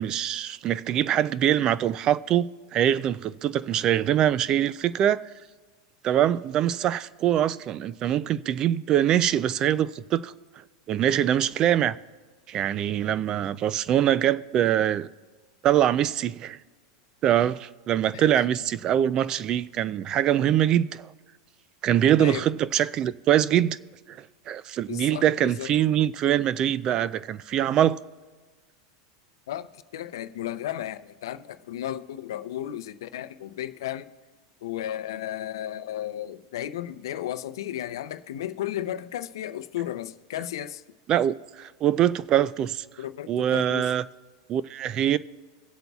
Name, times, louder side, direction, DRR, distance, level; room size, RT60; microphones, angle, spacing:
voice 1, 0.0-2.5 2.7-5.2 6.0-10.3 10.9-12.0 12.5-15.1 15.6-16.6 17.2-21.1 21.8-23.8 24.1-24.2 24.5-28.0 41.1-42.8 43.3-44.0 44.5-45.2, right 11 dB, 30° right, 0.3 m, -23 dB
voice 2, 24.9-25.7 29.5-29.7 29.9-34.1 34.6-40.8 43.0-44.0, left 12 dB, 90° left, 0.5 m, -34 dB
23.0 x 8.0 x 2.3 m
supercardioid pair, 150°, 2 cm